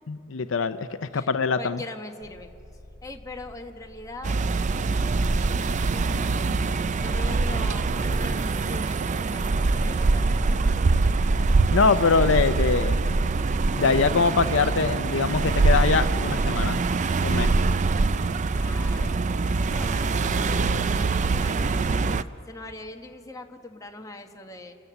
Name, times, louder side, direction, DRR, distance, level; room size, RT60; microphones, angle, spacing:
voice 1, 0.1-1.8 11.7-13.3 13.8-16.9 17.2-17.6, left 4 dB, 70° left, 11 dB, 0.6 m, -23 dB
voice 2, 1.6-2.5 3.0-4.4 5.1-6.3 6.7-10.9 18.6-19.2 19.7-24.8, left 2 dB, 15° left, 3 dB, 1.2 m, -42 dB
sound 1, 2.2-7.5, left 1 dB, ahead, 2.3 m, -48 dB
sound 2, 4.2-22.2, right 3 dB, 35° right, 0.4 m, -24 dB
sound 3, 5.9-17.7, right 4 dB, 60° right, 5.4 m, -50 dB
29.0 x 14.0 x 6.9 m, 2.4 s
head